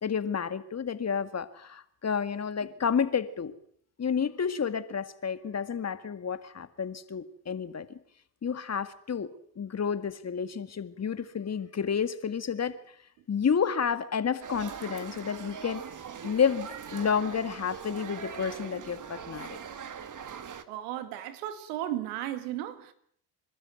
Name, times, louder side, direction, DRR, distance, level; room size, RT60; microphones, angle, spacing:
voice 1, 0.0-3.5 4.0-7.9 8.4-12.8 13.3-15.8 16.2-19.6, left 6 dB, 35° left, 2.0 m, -30 dB
sound 1, 14.4-20.6, right 7 dB, 40° right, 2.1 m, -41 dB
voice 2, 20.7-22.9, right 12 dB, 85° right, 2.2 m, -35 dB
27.5 x 12.5 x 9.3 m
supercardioid pair, 75°, 46 cm